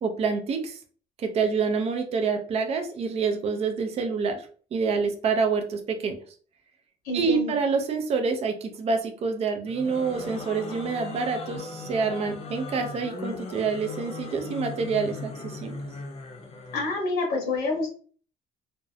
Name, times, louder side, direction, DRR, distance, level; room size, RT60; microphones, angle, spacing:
voice 1, 0.0-0.8 1.2-4.4 4.7-6.2 7.1-15.8, right 5 dB, 40° right, 5 dB, 0.4 m, -27 dB
voice 2, 7.0-7.5 16.7-17.9, left 3 dB, 80° left, -2 dB, 0.9 m, -27 dB
sound 1, 9.6-17.0, left 3 dB, 35° left, 0.6 m, -38 dB
2.5 x 2.0 x 2.6 m, 0.43 s
cardioid pair, 110°, 17 cm